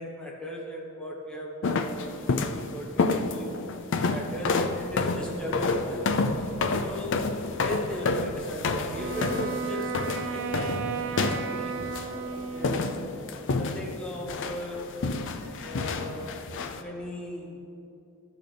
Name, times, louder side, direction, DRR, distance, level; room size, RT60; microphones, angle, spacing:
voice 1, 0.0-3.6 4.1-6.2 6.8-7.3 7.6-10.7 11.3-11.7 12.5-13.1 13.5-14.9 15.4-17.6, equal, 5° left, -3 dB, 1.3 m, -37 dB
sound 1, 1.6-2.6 3.0-12.2 12.6-14.0 14.3-16.8, left 3 dB, 60° left, 0.5 m, -29 dB
sound 2, 4.9-13.5, equal, 25° left, 1.8 m, -43 dB
Wind instrument woodwind instrument, 8.9-13.1, right 5 dB, 65° right, 0.5 m, -34 dB
14.0 x 6.4 x 3.4 m, 2.7 s
head